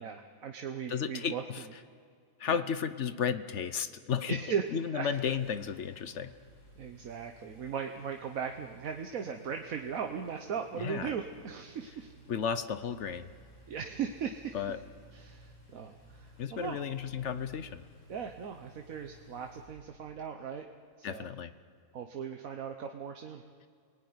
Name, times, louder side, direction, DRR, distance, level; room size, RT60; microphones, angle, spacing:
voice 1, 0.0-1.4 2.5-2.6 4.3-4.6 4.9-5.1 6.8-12.1 13.7-14.6 15.1-16.8 18.1-20.7 21.0-21.3 21.9-23.4, right 7 dB, 85° right, 4 dB, 1.5 m, -38 dB
voice 2, 0.9-1.6 2.4-4.4 4.7-6.3 10.8-11.1 12.3-13.3 14.5-14.8 16.4-17.8 21.0-21.5, left 7 dB, 60° left, 12 dB, 1.1 m, -33 dB
Engine, 4.7-20.4, right 1 dB, 85° left, 6.4 m, -57 dB
29.0 x 19.0 x 9.6 m, 2.1 s
omnidirectional pair, 1.4 m